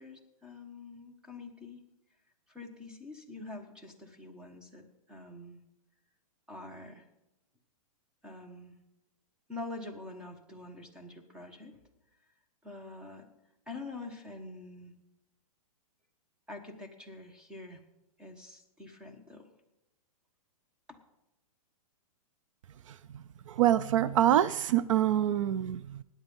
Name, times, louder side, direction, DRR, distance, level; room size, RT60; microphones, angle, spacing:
voice 1, 0.0-1.8 2.5-5.6 6.5-7.1 8.2-8.8 9.5-11.7 12.6-13.3 13.7-14.9 16.5-17.8 18.2-19.5 20.9-21.0, left 3 dB, 5° right, 4 dB, 1.2 m, -45 dB
voice 2, 22.9-26.0, right 11 dB, 60° right, 16 dB, 0.5 m, -26 dB
17.0 x 10.0 x 5.4 m, 0.92 s
hypercardioid pair, 160°, 19 cm